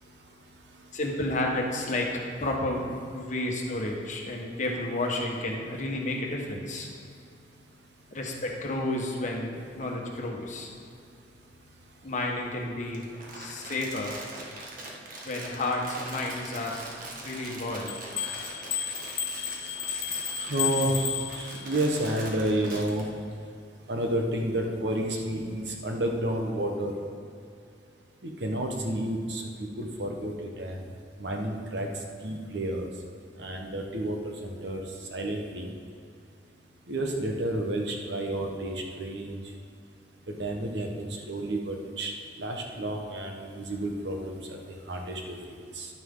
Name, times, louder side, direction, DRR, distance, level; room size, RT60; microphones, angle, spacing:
voice 1, 0.9-2.1 2.4-6.9 8.1-10.7 12.0-13.1 13.3-14.2 15.2-16.8 17.2-17.9, left 2 dB, 45° left, 0 dB, 1.4 m, -31 dB
Crumpling crinkling, 12.9-23.0, right 2 dB, 50° right, 1.5 m, -42 dB
sound 1, 17.9-21.8, left 9 dB, 65° left, 0.8 m, -33 dB
voice 2, 20.4-23.0 23.9-27.0 28.2-29.4 29.8-30.8 31.2-31.9 32.2-32.9 33.4-34.8 35.1-35.7 36.9-39.4 40.3-42.1 42.4-44.6 44.9-45.4 45.7-45.9, right 1 dB, 70° right, 2 dB, 1.2 m, -30 dB
11.0 x 9.4 x 3.8 m, 2.5 s
head